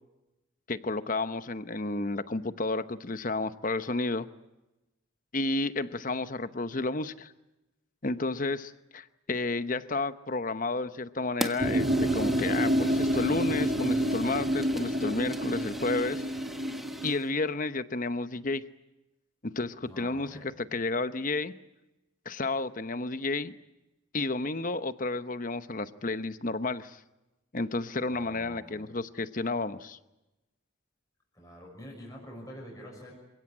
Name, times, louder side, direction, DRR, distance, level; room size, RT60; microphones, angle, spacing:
voice 1, 0.7-4.3 5.3-7.3 8.0-16.3 17.0-18.6 19.4-21.5 22.2-23.5 24.1-27.0 27.5-30.0, left 3 dB, 40° left, 12 dB, 0.9 m, -31 dB
Fire, 11.4-17.3, equal, ahead, 1.5 m, -41 dB
sound 1, 11.6-17.1, equal, 40° right, 1.4 m, -28 dB
voice 2, 19.8-20.5 28.0-28.9 31.3-33.2, equal, 15° left, -1 dB, 6.1 m, -46 dB
28.0 x 16.5 x 9.9 m, 0.99 s
head